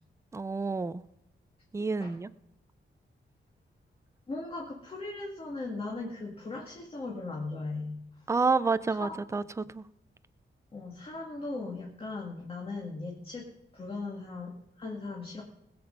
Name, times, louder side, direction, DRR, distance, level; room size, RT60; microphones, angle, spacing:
voice 1, 0.3-1.0 1.7-2.3 8.3-9.8, right 4 dB, 15° right, 0.4 m, -29 dB
voice 2, 4.3-8.0 10.7-13.5 13.7-15.4, left 3 dB, 30° left, 2.0 m, -38 dB
20.0 x 7.9 x 5.3 m
wide cardioid pair, 170°, 20 cm